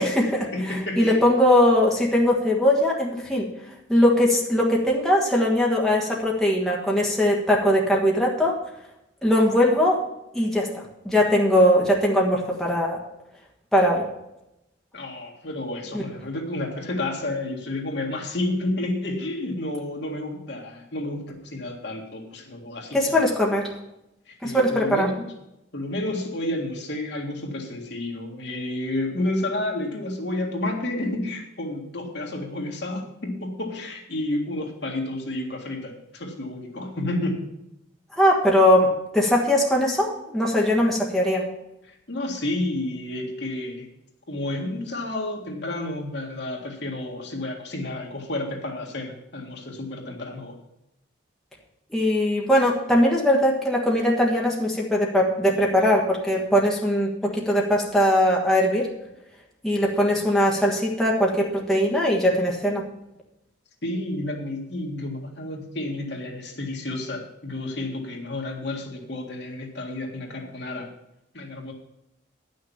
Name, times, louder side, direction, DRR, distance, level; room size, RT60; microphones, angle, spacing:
voice 1, 0.0-3.5 3.9-8.6 9.2-10.0 10.3-13.0 13.7-14.1 15.9-16.0 22.9-23.7 24.4-25.1 38.1-41.5 51.9-58.9 59.6-62.8, left 1 dB, ahead, -3 dB, 1.5 m, -20 dB
voice 2, 0.5-1.2 14.9-23.2 24.3-25.2 25.7-37.5 41.9-43.9 44.3-50.6 63.8-70.9 71.3-71.7, left 1 dB, 60° left, 1 dB, 1.9 m, -30 dB
10.5 x 6.4 x 7.2 m, 0.86 s
head